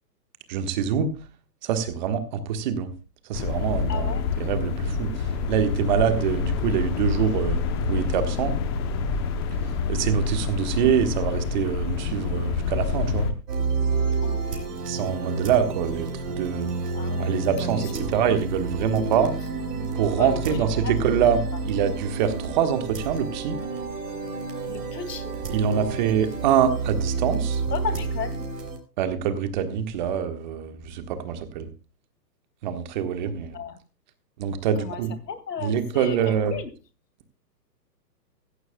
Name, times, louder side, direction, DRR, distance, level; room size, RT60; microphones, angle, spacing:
voice 1, 0.5-1.1 1.6-2.9 3.3-5.1 5.5-7.6 7.9-8.6 9.9-13.3 14.9-16.7 17.2-19.3 20.0-23.6 25.5-27.6 29.0-31.7 32.6-33.6 34.4-35.1 35.6-36.6, right 8 dB, 25° right, 9 dB, 1.5 m, -25 dB
sound 1, 3.3-13.3, left 5 dB, 15° left, 0.8 m, -27 dB
voice 2, 3.9-4.3 14.2-14.8 16.9-17.4 17.6-18.1 20.2-20.9 24.7-25.3 27.7-28.4 33.5-33.8 34.8-35.0 35.3-36.7, left 7 dB, 70° left, 12 dB, 2.5 m, -35 dB
sound 2, 13.5-28.8, right 3 dB, 65° right, 5.0 m, -29 dB
15.5 x 15.0 x 2.3 m, 0.33 s
hypercardioid pair, 155°, 50 cm